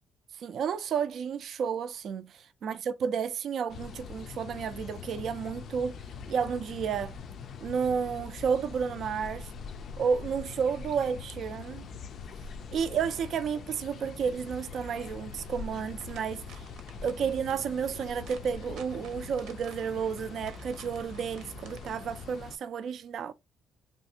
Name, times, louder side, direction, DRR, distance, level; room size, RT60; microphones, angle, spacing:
voice 1, 0.4-2.2 2.6-6.0 6.3-7.1 7.6-9.5 10.0-11.9 12.7-16.7 17.0-23.3, right 6 dB, 55° right, 0.4 m, -31 dB
sound 1, 3.7-22.6, left 5 dB, 55° left, 0.3 m, -43 dB
sound 2, 14.6-22.0, right 6 dB, 80° right, 0.8 m, -54 dB
3.2 x 2.5 x 2.7 m
cardioid pair, 110°, 0 cm